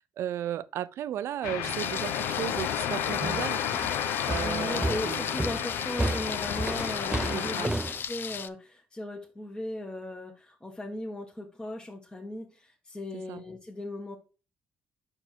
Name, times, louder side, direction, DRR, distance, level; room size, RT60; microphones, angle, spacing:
voice 1, 0.2-3.6 4.3-5.3 7.3-7.8 13.3-13.4, right 11 dB, 70° right, 0.4 m, -35 dB
sound 1, 1.4-7.7, left 9 dB, 90° left, 0.7 m, -32 dB
Thunder, 1.6-8.5, left 7 dB, 50° left, 0.5 m, -37 dB
sound 2, 3.2-8.0, right 1 dB, 15° right, 0.5 m, -32 dB
voice 2, 4.1-7.8 8.1-14.2, left 1 dB, 15° left, 1.1 m, -37 dB
5.7 x 4.4 x 4.4 m
supercardioid pair, 75°, 5 cm